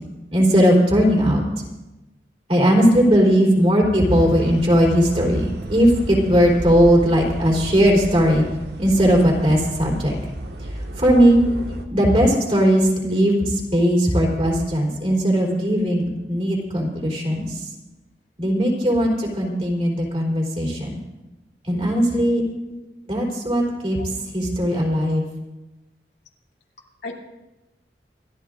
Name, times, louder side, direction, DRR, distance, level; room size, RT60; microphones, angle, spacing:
voice 1, 0.3-1.4 2.5-8.4 8.8-10.1 11.0-11.4 11.9-17.6 18.4-21.0 21.7-22.4 23.1-24.0 24.3-25.3, equal, 35° right, -2 dB, 3.8 m, -18 dB
sound 1, 4.1-11.9, right 1 dB, 75° right, 1.6 m, -32 dB
voice 2, 22.4-22.8 27.0-27.2, left 2 dB, 75° left, -2 dB, 2.7 m, -36 dB
27.0 x 13.5 x 2.6 m, 1.1 s
head